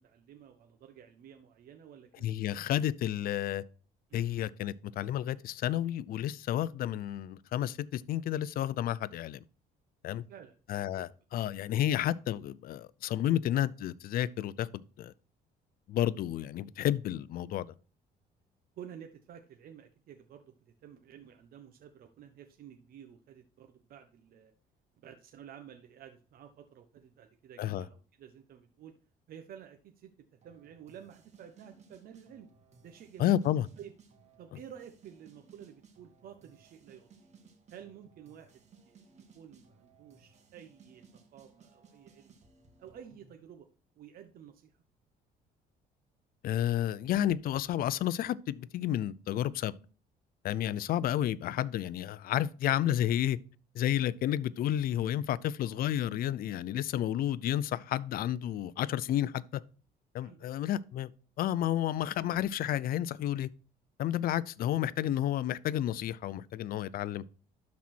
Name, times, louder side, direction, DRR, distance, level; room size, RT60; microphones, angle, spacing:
voice 1, 0.0-2.4 4.1-4.3 10.1-10.5 11.0-11.1 18.8-24.5 24.9-29.0 29.3-30.1 30.4-32.5 32.8-33.3 33.8-33.9 34.4-37.3 37.7-42.4 42.8-43.7 44.0-44.7 50.7-50.8 60.2-60.5 64.1-64.2, right 9 dB, 60° right, 1.0 m, -52 dB
voice 2, 2.2-3.6 4.1-9.4 10.0-10.2 10.7-15.1 15.9-17.7 27.6-27.8 33.2-33.7 46.4-49.7 50.4-53.4 53.7-59.6 60.1-61.1 61.4-63.5 64.0-67.2, left 12 dB, 60° left, 0.5 m, -31 dB
sound 1, 30.4-43.3, right 5 dB, 40° right, 2.0 m, -61 dB
12.0 x 4.2 x 4.3 m
cardioid pair, 110°, 17 cm